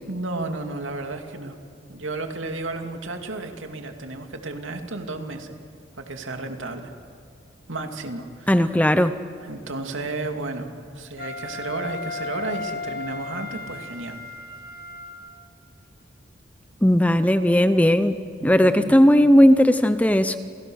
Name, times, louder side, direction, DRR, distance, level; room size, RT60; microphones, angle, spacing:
voice 1, 0.1-1.6 1.9-5.6 6.0-6.9 7.7-8.6 9.4-14.2 18.4-18.9, right 2 dB, 80° right, 4 dB, 2.6 m, -33 dB
voice 2, 8.5-9.1 16.8-18.1 18.4-20.4, equal, 5° left, 11 dB, 0.7 m, -17 dB
Wind instrument woodwind instrument, 11.2-15.5, left 3 dB, 50° left, 1.9 m, -35 dB
29.0 x 29.0 x 6.4 m, 2.4 s
head